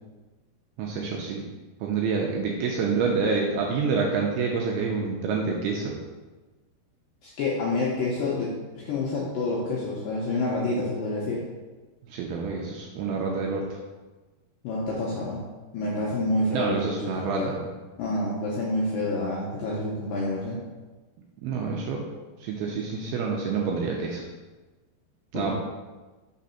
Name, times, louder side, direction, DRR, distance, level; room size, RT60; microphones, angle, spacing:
voice 1, 0.8-1.4 1.8-6.0 12.1-13.8 16.5-17.7 21.4-22.0 22.4-24.2 25.3-25.5, right 5 dB, 80° right, -1 dB, 2.3 m, -27 dB
voice 2, 7.2-11.4 14.6-15.4 15.7-17.5 18.0-20.6 25.3-25.5, left 2 dB, 80° left, -5 dB, 2.0 m, -28 dB
5.9 x 3.7 x 5.6 m, 1.2 s
omnidirectional pair, 5.0 m